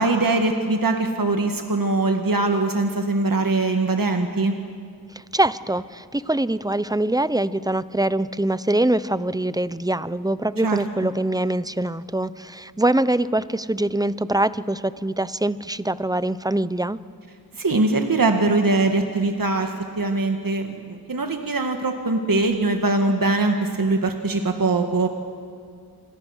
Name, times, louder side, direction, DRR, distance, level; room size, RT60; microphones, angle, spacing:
voice 1, 0.0-4.6 10.6-11.1 17.5-25.1, right 2 dB, 60° right, 4 dB, 1.7 m, -22 dB
voice 2, 5.3-17.0, right 1 dB, 10° right, 15 dB, 0.7 m, -23 dB
27.5 x 26.0 x 6.4 m, 2.2 s
wide cardioid pair, 60°, 38 cm